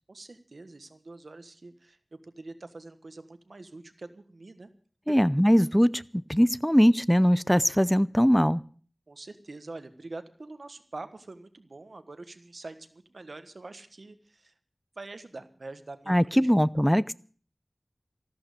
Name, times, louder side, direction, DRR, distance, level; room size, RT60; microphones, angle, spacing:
voice 1, 0.1-4.7 5.1-5.2 9.1-14.5 14.9-16.5, right 2 dB, 85° right, 10 dB, 1.5 m, -45 dB
voice 2, 5.1-8.6 16.1-17.1, equal, 5° left, 18 dB, 0.6 m, -21 dB
14.5 x 13.5 x 6.8 m, 0.43 s
wide cardioid pair, 50°, 0 cm